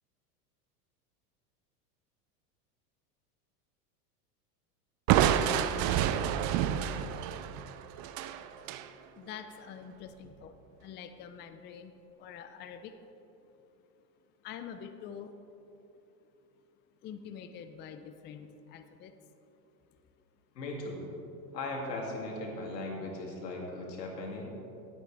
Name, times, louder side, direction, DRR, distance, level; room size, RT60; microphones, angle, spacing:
Crushing, 5.1-8.9, right 10 dB, 40° right, 0.5 m, -28 dB
voice 1, 9.2-13.0 14.4-15.3 17.0-19.1, left 8 dB, 25° left, 8 dB, 0.5 m, -46 dB
voice 2, 20.5-21.0 21.5-24.4, left 2 dB, 90° left, -1 dB, 2.8 m, -38 dB
18.5 x 8.7 x 3.4 m, 2.9 s
supercardioid pair, 120°, 48 cm